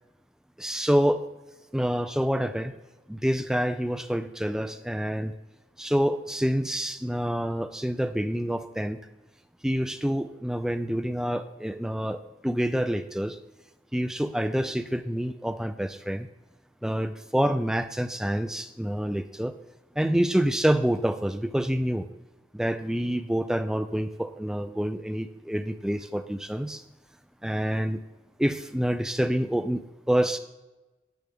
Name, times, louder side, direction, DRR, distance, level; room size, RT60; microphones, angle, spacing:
voice 1, 0.6-1.2 1.7-2.7 3.1-5.3 5.8-9.0 9.6-13.4 13.9-16.3 16.8-19.5 20.0-22.1 22.5-26.8 27.4-28.0 28.4-30.4, equal, 5° right, 10 dB, 0.3 m, -27 dB
10.5 x 8.8 x 3.5 m, 1.1 s
head